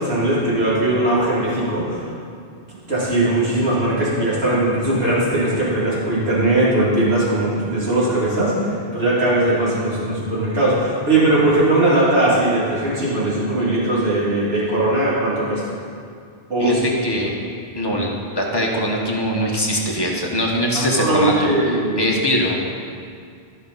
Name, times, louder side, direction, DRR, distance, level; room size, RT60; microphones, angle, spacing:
voice 1, 0.0-2.1 2.9-15.6 16.5-16.8 20.7-22.1, right 1 dB, 70° right, -8 dB, 2.7 m, -19 dB
voice 2, 16.6-17.3 17.7-21.5 22.0-22.6, equal, 25° left, -2 dB, 1.2 m, -22 dB
14.0 x 5.5 x 4.0 m, 2.3 s
omnidirectional pair, 1.1 m